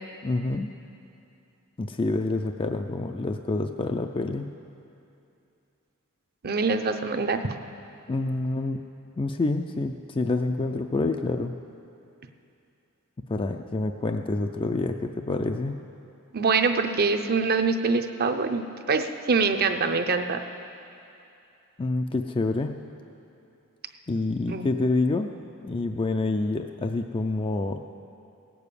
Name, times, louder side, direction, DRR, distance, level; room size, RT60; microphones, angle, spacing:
voice 1, 0.2-0.7 1.8-4.5 8.1-8.8 9.2-11.5 13.3-15.8 21.8-22.8 24.1-25.3 25.6-27.8, left 2 dB, 25° left, 5 dB, 0.4 m, -27 dB
voice 2, 6.4-7.6 16.3-20.4 24.5-24.7, right 4 dB, 45° right, 8 dB, 0.6 m, -24 dB
17.0 x 7.0 x 8.4 m, 2.7 s
head